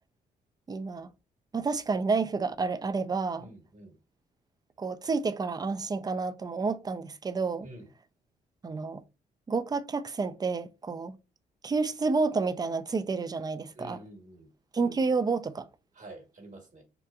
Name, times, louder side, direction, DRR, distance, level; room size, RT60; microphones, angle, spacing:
voice 1, 0.7-1.1 1.5-3.5 4.8-7.7 8.6-9.0 9.5-11.1 11.6-14.0 14.7-15.7, right 4 dB, 20° right, 0.4 m, -29 dB
voice 2, 3.4-3.9 7.6-7.9 13.7-14.5 15.9-16.8, right 1 dB, 45° right, 1.2 m, -48 dB
2.8 x 2.1 x 2.3 m
supercardioid pair, 50°, 18 cm